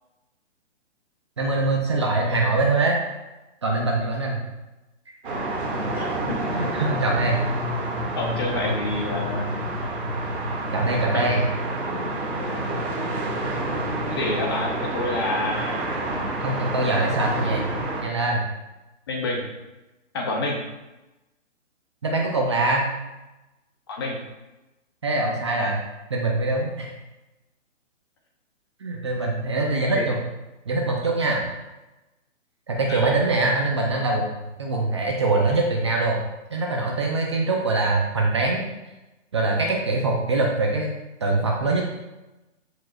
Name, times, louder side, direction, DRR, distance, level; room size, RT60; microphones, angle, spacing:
voice 1, 1.4-3.0 3.6-4.4 6.5-7.4 10.7-11.4 16.4-17.7 18.0-18.4 22.0-22.9 25.0-25.8 26.1-26.9 28.8-30.2 30.7-31.5 32.7-34.3 34.6-36.2 36.5-38.7 39.3-40.9 41.2-41.8, right 2 dB, 25° right, 0 dB, 0.6 m, -23 dB
sound 1, 5.2-18.0, right 1 dB, 45° right, 2.1 m, -28 dB
voice 2, 5.9-6.8 8.1-9.5 11.1-11.2 12.0-12.2 14.2-15.9 19.1-19.5 20.1-20.6 23.9-24.2 29.9-30.1 32.9-33.1, left 2 dB, 20° left, 0 dB, 0.7 m, -28 dB
14.0 x 4.9 x 2.4 m, 1.0 s
hypercardioid pair, 165°, 38 cm